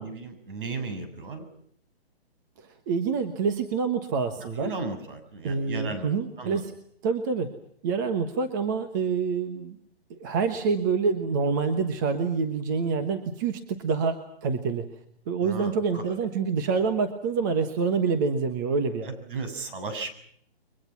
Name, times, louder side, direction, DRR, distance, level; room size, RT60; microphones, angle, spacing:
voice 1, 0.0-1.5 4.4-6.1 6.4-6.6 15.4-16.2 19.0-20.1, right 3 dB, 55° right, 9 dB, 7.3 m, -35 dB
voice 2, 2.6-4.7 5.4-6.7 7.0-7.5 7.8-9.8 10.1-14.9 15.3-19.1, right 5 dB, 20° right, 7 dB, 1.3 m, -27 dB
30.0 x 23.5 x 6.0 m, 0.65 s
hypercardioid pair, 175°, 32 cm